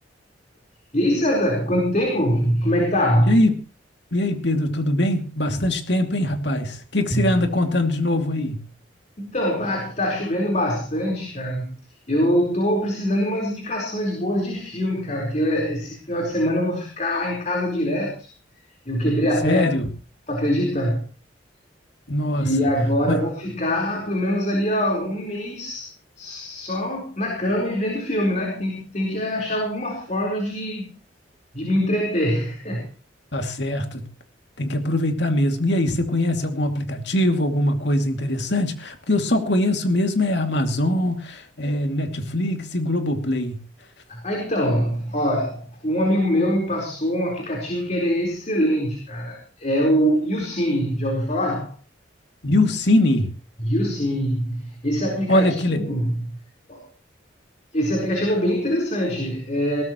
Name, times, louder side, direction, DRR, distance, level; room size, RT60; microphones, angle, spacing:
voice 1, 0.9-3.4 7.1-7.2 9.2-11.7 12.1-18.3 18.9-19.7 20.3-21.0 22.4-25.9 26.2-30.9 31.5-32.9 44.1-51.7 53.6-56.4 56.7-56.8 57.7-59.8, equal, 40° left, 1 dB, 4.4 m, -23 dB
voice 2, 4.1-8.6 19.4-19.9 22.1-22.5 23.1-23.2 33.3-34.1 34.6-43.6 52.4-53.3 55.3-55.9, left 1 dB, 65° left, 5 dB, 2.6 m, -22 dB
21.0 x 17.5 x 3.1 m, 0.35 s
head